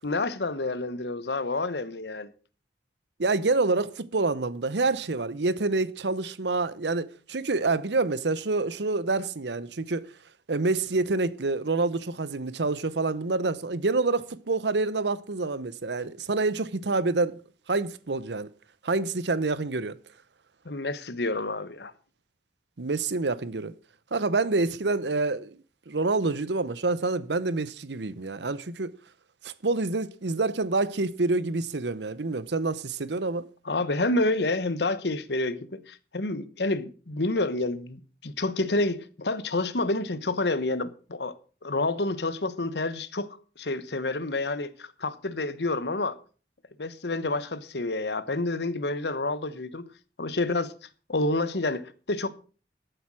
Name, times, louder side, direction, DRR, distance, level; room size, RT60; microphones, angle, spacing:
voice 1, 0.0-2.3 20.6-21.9 33.6-41.4 41.6-46.2 46.8-49.8 50.2-50.7 51.1-52.3, left 2 dB, 75° left, 1.0 m, -29 dB
voice 2, 3.2-10.1 10.5-17.4 17.7-18.5 18.8-20.0 22.8-23.7 24.1-25.6 25.9-28.9 29.4-33.5, right 3 dB, 80° right, 0.9 m, -27 dB
13.0 x 7.9 x 6.2 m
head